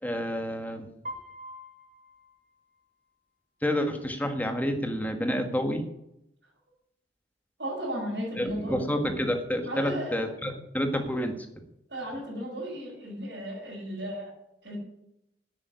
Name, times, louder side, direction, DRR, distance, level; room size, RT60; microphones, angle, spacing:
voice 1, 0.0-0.9 3.6-5.8 8.4-11.3, equal, 10° left, 5 dB, 1.6 m, -29 dB
Piano, 1.0-3.1, equal, 40° right, 2.2 m, -44 dB
voice 2, 7.6-8.8 9.6-10.2 11.9-14.3 14.6-14.8, equal, 70° right, -9 dB, 6.5 m, -35 dB
10.5 x 8.9 x 9.5 m, 0.82 s
head